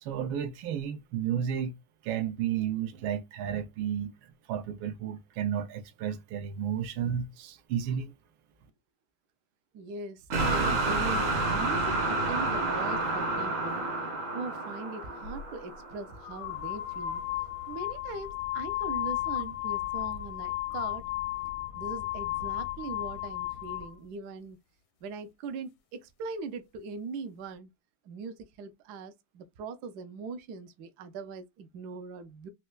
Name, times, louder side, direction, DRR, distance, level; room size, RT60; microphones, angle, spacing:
voice 1, 0.0-1.7 2.0-4.1 4.5-8.1, right 9 dB, 85° right, 1.4 m, -32 dB
voice 2, 9.7-13.8 14.3-17.2 17.7-21.1 21.7-24.6 25.0-27.7 28.0-32.5, right 4 dB, 70° right, 1.0 m, -41 dB
sound 1, 10.3-16.4, right 2 dB, 55° right, 1.0 m, -29 dB
sound 2, 15.3-15.4 16.2-24.0, left 15 dB, 80° left, 1.3 m, -34 dB
4.3 x 2.1 x 2.2 m
omnidirectional pair, 2.1 m